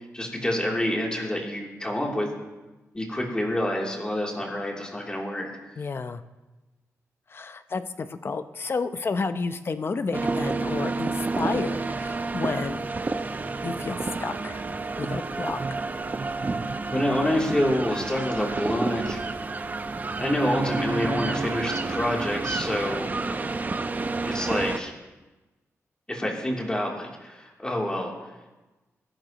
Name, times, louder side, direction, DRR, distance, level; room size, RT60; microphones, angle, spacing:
voice 1, 0.0-2.3 2.9-5.5 16.9-19.2 20.2-23.3 24.2-24.9 26.1-28.1, left 1 dB, 15° left, -2 dB, 3.0 m, -27 dB
voice 2, 5.8-6.2 7.3-12.9 13.6-14.6 15.0-15.6, left 4 dB, 45° left, 11 dB, 0.7 m, -31 dB
sound 1, 10.1-24.8, right 3 dB, 30° right, 0.7 m, -30 dB
20.0 x 11.5 x 3.0 m, 1.1 s
cardioid pair, 95°, 6 cm